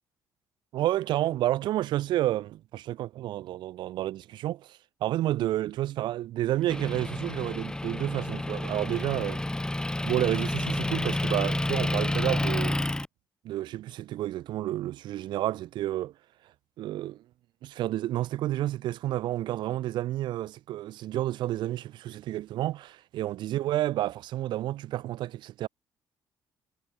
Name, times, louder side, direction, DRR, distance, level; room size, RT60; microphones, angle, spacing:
voice 1, 0.7-9.4 10.0-12.8 13.4-16.1 16.8-17.2 17.6-25.7, right 14 dB, 75° right, 0.9 m, -30 dB
Motor vehicle (road) / Engine, 6.7-13.1, left 1 dB, 10° left, 0.9 m, -29 dB
supercardioid pair, 70°, 8 cm